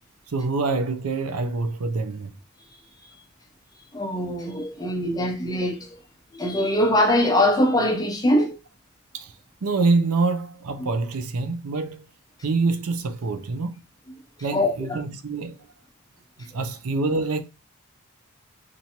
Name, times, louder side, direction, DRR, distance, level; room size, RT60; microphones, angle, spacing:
voice 1, 0.3-2.3 9.1-9.3 9.6-12.0 12.4-13.8 14.4-15.6 16.5-17.4, right 3 dB, 80° right, 0.5 m, -25 dB
voice 2, 3.9-6.0 6.3-8.6 10.8-10.9 14.5-14.7 16.4-16.5, left 1 dB, 15° left, 0.6 m, -22 dB
4.4 x 2.6 x 2.8 m
head